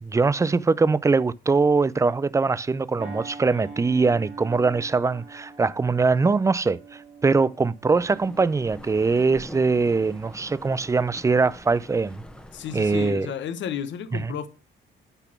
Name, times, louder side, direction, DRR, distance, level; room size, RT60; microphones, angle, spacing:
voice 1, 0.0-12.2 12.7-13.3 14.1-14.4, right 4 dB, 15° right, 0.4 m, -22 dB
sound 1, 3.0-11.8 12.3-12.5, right 4 dB, 65° right, 2.8 m, -45 dB
sound 2, 7.9-13.1, equal, 5° left, 1.1 m, -44 dB
voice 2, 12.5-14.5, left 8 dB, 65° left, 0.9 m, -32 dB
9.0 x 4.1 x 5.9 m
cardioid pair, 90°, 20 cm